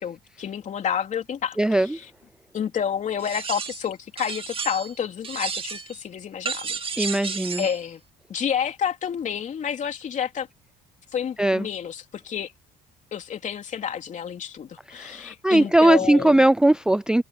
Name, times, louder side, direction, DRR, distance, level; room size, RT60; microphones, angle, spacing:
voice 1, 0.0-2.1 2.5-7.1 7.6-8.0 8.3-10.5 11.1-12.5 13.1-16.4, left 8 dB, 45° left, 3.2 m, -29 dB
voice 2, 1.6-2.0 7.0-7.6 11.4-11.7 14.9-17.2, right 1 dB, 5° right, 0.4 m, -19 dB
sound 1, 3.2-3.9 4.2-5.0 5.2-6.0 6.4-7.8, right 5 dB, 35° right, 2.0 m, -32 dB
cardioid pair, 110°, 17 cm